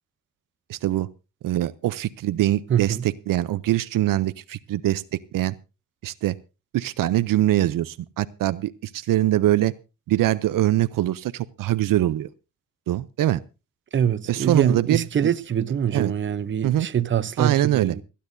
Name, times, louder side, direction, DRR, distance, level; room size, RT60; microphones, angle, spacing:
voice 1, 0.7-1.1 1.4-5.5 6.0-6.4 6.7-9.7 10.1-12.3 12.9-13.4 14.3-15.3 15.9-16.1 16.6-16.9 17.4-18.0, right 14 dB, 75° right, 0.6 m, -23 dB
voice 2, 2.7-3.1 13.9-18.0, right 8 dB, 35° right, 0.7 m, -24 dB
28.5 x 10.0 x 2.6 m
cardioid pair, 105°, 33 cm